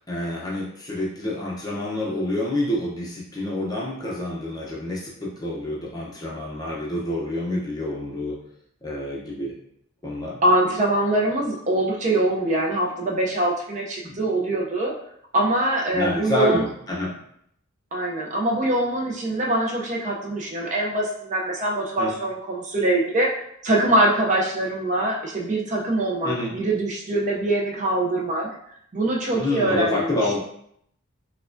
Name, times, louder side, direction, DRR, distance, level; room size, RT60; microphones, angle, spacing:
voice 1, 0.1-8.4 8.8-9.5 10.0-10.4 14.0-14.2 15.9-17.1 22.0-22.1 26.2-26.5 29.3-30.4, left 1 dB, 20° left, -4 dB, 0.6 m, -27 dB
voice 2, 10.4-14.9 15.3-16.7 17.9-23.3 23.6-28.5 28.9-30.4, right 1 dB, 35° right, -2 dB, 0.5 m, -23 dB
4.5 x 2.2 x 2.5 m, 0.70 s
head